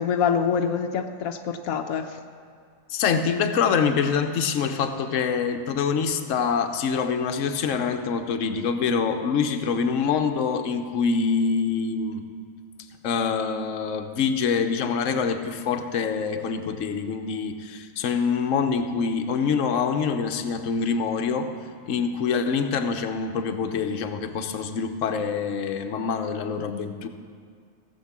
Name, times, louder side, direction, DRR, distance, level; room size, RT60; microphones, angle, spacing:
voice 1, 0.0-2.2, left 7 dB, 85° left, 6 dB, 1.2 m, -25 dB
voice 2, 2.9-12.2 13.0-21.5 21.9-27.1, left 6 dB, 65° left, 6 dB, 1.2 m, -25 dB
17.0 x 7.4 x 7.3 m, 2.2 s
omnidirectional pair, 1.4 m